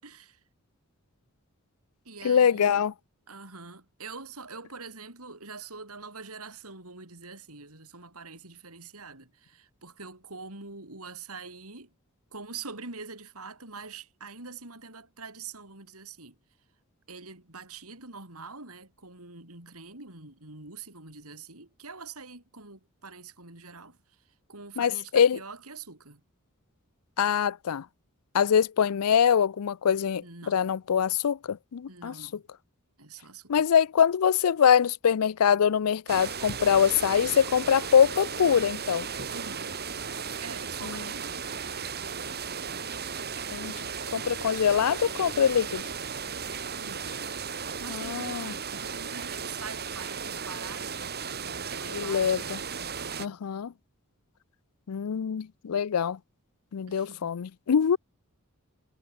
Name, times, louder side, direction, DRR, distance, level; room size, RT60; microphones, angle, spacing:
voice 1, 0.0-0.4 2.0-2.8 3.3-11.9 12.3-16.3 17.1-24.2 24.5-26.2 30.2-30.6 31.9-32.4 33.0-33.6 39.3-39.8 40.4-42.3 46.8-47.3 47.8-53.4 56.9-57.3, right 4 dB, 80° right, 6.5 m, -45 dB
voice 2, 2.2-2.9 24.8-25.4 27.2-27.9 28.3-32.1 33.5-39.1 40.8-41.0 43.5-43.8 44.1-45.8 47.9-48.5 51.9-52.6 53.2-53.7 54.9-56.2 56.7-58.0, left 7 dB, 85° left, 0.5 m, -24 dB
sound 1, 36.1-53.3, right 6 dB, 45° right, 5.0 m, -35 dB
head